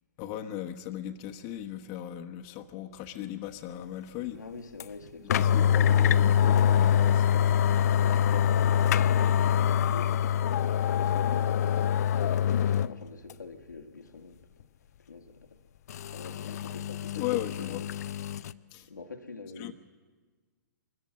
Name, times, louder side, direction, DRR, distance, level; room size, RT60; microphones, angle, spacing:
voice 1, 0.2-4.4 5.2-7.3 17.2-17.8 18.7-18.9 19.6-19.7, left 12 dB, 35° left, 1.1 m, -37 dB
voice 2, 4.3-5.9 7.9-11.5 12.1-14.4 15.1-15.6 16.1-18.0 18.5-18.6 18.9-19.7, left 4 dB, 90° left, 1.6 m, -45 dB
sound 1, 4.8-4.9 5.3-12.9 13.3-13.4 15.9-18.5, left 9 dB, 60° left, 0.6 m, -25 dB
21.5 x 14.5 x 8.7 m
hypercardioid pair, 125°, 10 cm